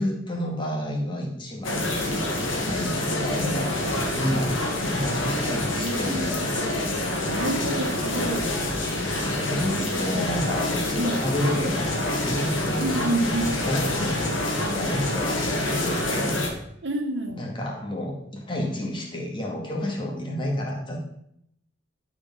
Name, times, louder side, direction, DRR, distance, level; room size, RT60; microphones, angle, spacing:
voice 1, 0.0-3.9 4.1-6.7 9.1-13.1 13.6-16.4 17.4-21.0, left 1 dB, 25° left, -1 dB, 2.1 m, -30 dB
sound 1, 1.6-16.5, left 1 dB, 85° left, 2.1 m, -27 dB
voice 2, 5.8-6.7 7.3-8.5 11.0-11.2 12.8-13.6 16.8-17.4, right 2 dB, 65° right, 5 dB, 1.4 m, -28 dB
12.0 x 5.0 x 5.5 m, 0.73 s
head